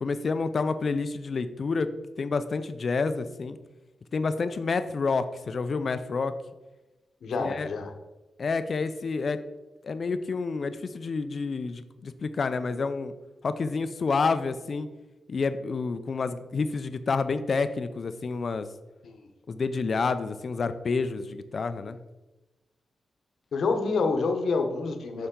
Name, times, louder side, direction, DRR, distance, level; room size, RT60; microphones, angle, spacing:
voice 1, 0.0-1.9 2.2-3.6 4.1-6.3 7.4-7.7 8.4-9.4 9.8-13.1 13.4-14.9 15.3-18.7 19.5-22.0, left 4 dB, 45° left, 11 dB, 0.4 m, -29 dB
voice 2, 7.2-7.9 19.0-19.3 23.5-25.3, left 4 dB, 70° left, 5 dB, 0.9 m, -27 dB
6.8 x 5.7 x 3.7 m, 1.1 s
wide cardioid pair, 150°, 0 cm